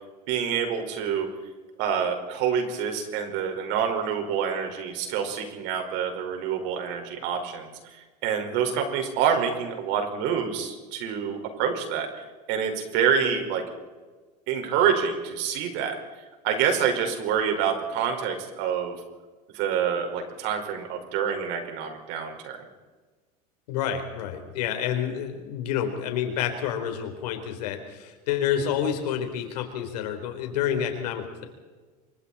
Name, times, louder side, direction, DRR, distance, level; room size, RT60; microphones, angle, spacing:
voice 1, 0.3-1.3 1.8-8.0 8.2-12.1 12.5-13.6 14.5-16.0 16.4-19.0 19.5-22.6, right 7 dB, 65° right, 4 dB, 5.3 m, -27 dB
voice 2, 23.7-31.4, left 9 dB, 85° left, 5 dB, 4.3 m, -29 dB
26.5 x 24.5 x 4.4 m, 1.3 s
supercardioid pair, 110°, 20 cm